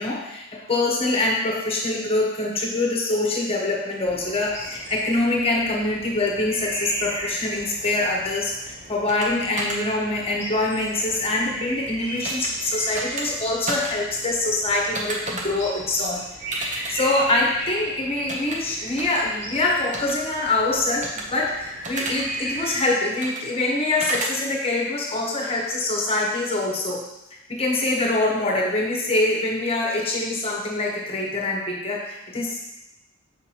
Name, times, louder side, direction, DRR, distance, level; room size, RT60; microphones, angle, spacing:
voice 1, 0.0-27.0 27.5-32.6, left 2 dB, 25° left, -2 dB, 1.2 m, -24 dB
sound 1, 4.0-22.8, right 1 dB, 60° right, 2.1 m, -37 dB
sound 2, 9.1-9.3 9.6-9.8 12.2-12.5 12.9-13.3 13.7-13.9 14.9-15.4 16.5-16.9 18.3-18.6 19.0-19.2 19.9-20.1 21.0-21.2 21.8-22.2 23.2-23.4 24.0-24.3, right 2 dB, 35° right, 0.8 m, -30 dB
6.6 x 5.9 x 3.0 m, 0.90 s
head